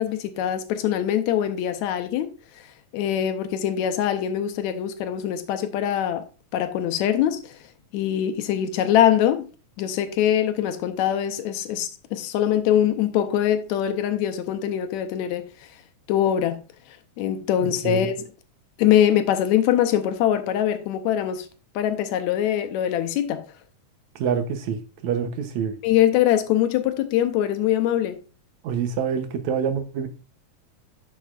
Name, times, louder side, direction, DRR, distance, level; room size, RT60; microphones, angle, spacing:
voice 1, 0.0-2.3 2.9-6.2 6.5-7.6 7.9-9.5 9.8-15.4 16.1-16.6 17.2-18.3 18.8-21.5 21.8-23.4 25.8-28.2, left 10 dB, 80° left, 2.0 m, -23 dB
voice 2, 24.2-25.7 28.6-30.1, right 7 dB, 75° right, 2.2 m, -26 dB
10.5 x 6.5 x 2.4 m
omnidirectional pair, 3.3 m